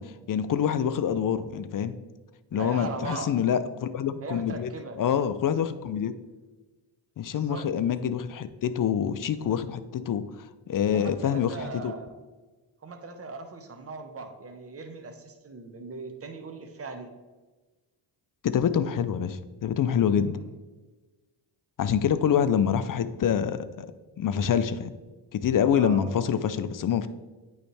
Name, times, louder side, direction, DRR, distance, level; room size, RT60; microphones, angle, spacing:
voice 1, 0.0-1.9 2.5-4.7 5.0-6.2 7.2-11.9 18.4-20.4 21.8-23.9 24.2-24.9 25.3-27.1, left 8 dB, 45° left, 12 dB, 0.5 m, -26 dB
voice 2, 2.5-3.4 4.2-5.0 7.3-7.7 10.8-12.1 12.8-17.1 20.2-20.4 25.7-26.1, right 3 dB, 30° right, 6 dB, 0.9 m, -39 dB
9.0 x 3.2 x 3.3 m, 1.2 s
cardioid pair, 65°, 50 cm